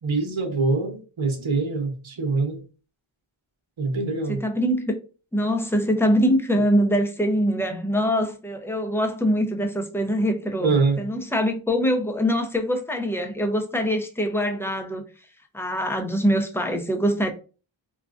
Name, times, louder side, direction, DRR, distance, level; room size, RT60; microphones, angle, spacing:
voice 1, 0.0-2.6 3.8-4.4 10.6-11.0, right 3 dB, 65° right, 0.9 m, -24 dB
voice 2, 4.3-5.0 5.3-15.0 15.5-17.3, equal, 5° left, 0.6 m, -23 dB
3.7 x 2.3 x 2.4 m
wide cardioid pair, 60°, 50 cm